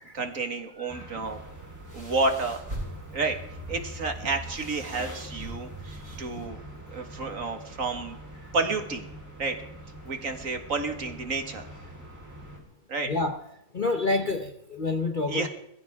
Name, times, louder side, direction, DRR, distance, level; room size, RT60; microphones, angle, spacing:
voice 1, 0.1-1.4 1.9-2.6 3.1-6.6 6.9-8.2 8.5-9.1 9.4-9.6 10.0-11.7 12.9-13.1 15.3-15.5, right 3 dB, 50° right, 6 dB, 2.0 m, -30 dB
sound 1, 0.9-12.6, equal, 10° right, 3.8 m, -45 dB
sound 2, 1.2-6.5, right 1 dB, 35° right, 7.4 m, -41 dB
voice 2, 13.1-13.4 13.7-15.5, left 3 dB, 35° left, 6 dB, 0.9 m, -28 dB
21.0 x 15.5 x 3.6 m, 0.81 s
omnidirectional pair, 1.8 m